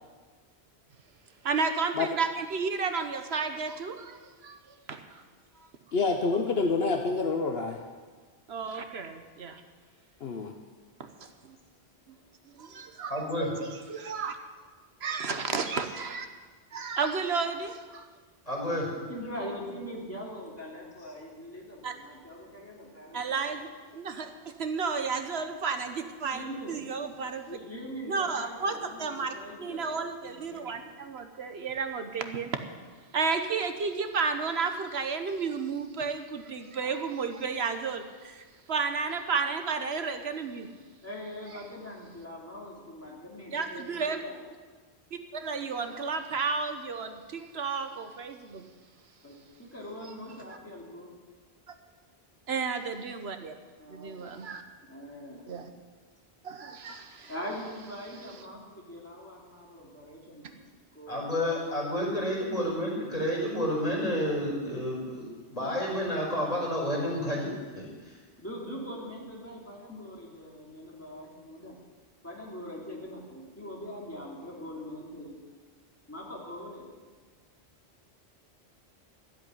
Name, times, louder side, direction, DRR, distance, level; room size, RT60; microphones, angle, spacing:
voice 1, 1.4-4.6 4.9-5.0 8.5-9.6 12.6-14.4 15.0-16.3 16.7-18.1 21.8-21.9 23.1-27.5 28.1-32.6 33.1-40.7 43.5-44.2 45.3-48.6 52.5-53.5 53.9-54.6 55.5-55.6 56.4-57.3, right 5 dB, 70° right, 7 dB, 1.2 m, -32 dB
voice 2, 5.9-7.8 10.2-10.5, left 4 dB, 65° left, 4 dB, 1.1 m, -27 dB
voice 3, 13.1-13.5 18.5-18.9 61.1-68.2, equal, 35° left, -3 dB, 4.8 m, -30 dB
voice 4, 18.9-23.4 26.3-26.8 27.5-29.9 30.5-30.6 41.0-44.3 49.2-51.1 53.8-54.4 54.8-55.4 57.3-60.6 60.9-61.4 68.4-71.8 72.2-75.4 76.1-76.9, equal, 15° left, -4 dB, 3.1 m, -42 dB
13.0 x 8.0 x 9.8 m, 1.4 s
omnidirectional pair, 1.1 m